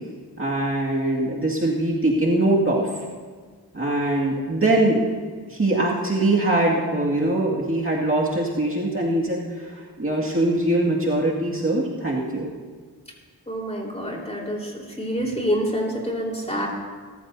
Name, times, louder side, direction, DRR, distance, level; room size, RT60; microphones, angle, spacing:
voice 1, 0.4-2.9 3.7-5.0 5.5-12.5, right 1 dB, 35° right, -4 dB, 2.1 m, -22 dB
voice 2, 13.5-14.7 15.0-16.7, equal, 15° left, -2 dB, 4.0 m, -27 dB
22.5 x 13.5 x 2.7 m, 1.5 s
cardioid pair, 60°, 40 cm